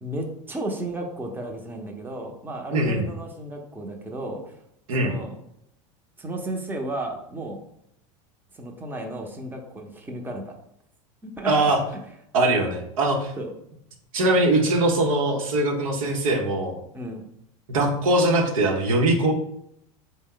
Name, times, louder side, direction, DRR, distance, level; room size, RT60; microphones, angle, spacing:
voice 1, 0.0-4.6 5.0-5.4 6.2-7.6 8.5-10.5 11.2-11.5 13.4-13.5 16.9-17.3, right 1 dB, 10° right, 1 dB, 0.7 m, -33 dB
voice 2, 2.7-3.1 4.9-5.1 11.5-11.8 12.3-13.3 14.1-16.8 17.7-19.3, right 2 dB, 80° right, 2 dB, 0.9 m, -21 dB
4.3 x 2.2 x 3.8 m, 0.76 s
hypercardioid pair, 95°, 17 cm